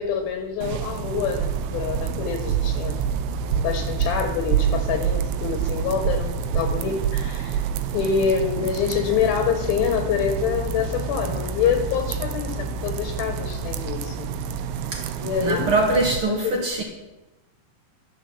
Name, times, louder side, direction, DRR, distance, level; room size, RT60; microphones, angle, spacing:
voice 1, 0.0-3.0 3.5-7.6 7.9-14.3 15.2-15.7 16.3-16.6, left 7 dB, 70° left, 5 dB, 2.9 m, -26 dB
sound 1, 0.6-16.2, right 7 dB, 80° right, 2.1 m, -27 dB
voice 2, 15.4-16.8, right 2 dB, 50° right, 1 dB, 1.7 m, -23 dB
12.0 x 7.6 x 7.0 m, 0.98 s
omnidirectional pair, 4.6 m